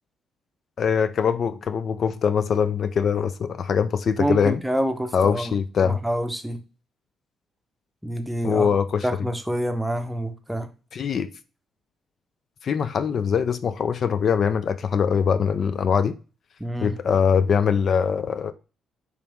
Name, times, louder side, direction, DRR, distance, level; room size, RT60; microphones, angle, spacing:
voice 1, 0.8-4.6 5.1-6.0 8.4-9.1 10.9-11.3 12.6-16.2 16.8-18.5, left 6 dB, 55° left, 0.3 m, -22 dB
voice 2, 4.2-5.5 5.8-6.6 8.0-8.7 9.0-10.7 16.6-16.9, right 1 dB, 5° right, 0.6 m, -27 dB
4.8 x 3.1 x 3.5 m
cardioid pair, 90°, 0 cm